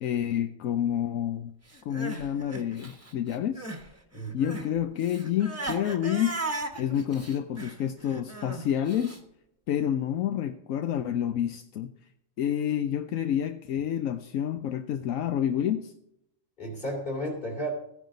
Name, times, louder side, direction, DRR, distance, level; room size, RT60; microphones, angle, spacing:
voice 1, 0.0-1.5 1.8-3.7 4.3-6.4 6.8-9.2 9.7-11.9 12.4-15.9, left 10 dB, 80° left, 9 dB, 1.1 m, -29 dB
Crying sobbing, 1.7-3.9 4.1-9.2, right 2 dB, 10° right, 1.2 m, -37 dB
voice 2, 4.1-4.6 16.6-17.7, equal, 40° left, 1 dB, 3.6 m, -33 dB
15.0 x 10.5 x 4.0 m, 0.81 s
omnidirectional pair, 1.4 m